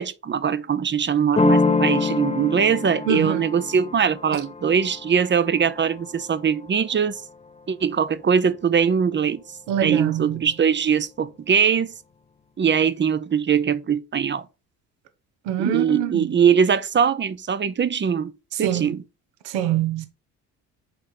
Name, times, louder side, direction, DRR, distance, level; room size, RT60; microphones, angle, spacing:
voice 1, 0.0-7.2 7.7-9.4 9.8-11.9 12.6-14.4 15.6-18.3 18.6-19.0, right 7 dB, 25° right, 0.6 m, -21 dB
sound 1, 1.4-6.9, left 4 dB, 15° left, 0.7 m, -26 dB
voice 2, 3.1-3.4 9.7-10.5 15.4-16.3 18.5-19.0 19.4-20.1, right 9 dB, 75° right, 1.1 m, -24 dB
5.3 x 4.2 x 4.3 m
supercardioid pair, 65°, 45 cm